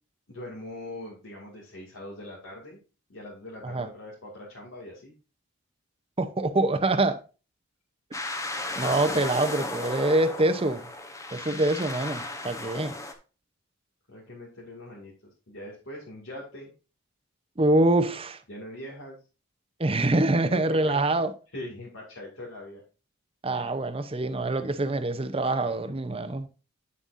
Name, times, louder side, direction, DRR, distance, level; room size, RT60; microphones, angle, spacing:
voice 1, 0.3-2.8 3.1-5.1 14.1-15.1 15.5-16.7 17.8-18.0 18.5-19.2 20.4-21.1 21.5-22.8 23.5-23.7, left 1 dB, 70° left, 2.4 m, -42 dB
voice 2, 6.2-7.2 8.8-10.8 11.3-12.9 17.6-18.4 19.8-21.3 23.4-26.5, right 2 dB, 25° right, 0.7 m, -25 dB
sound 1, 8.1-13.1, left 2 dB, 15° left, 0.9 m, -35 dB
8.8 x 7.4 x 2.6 m
head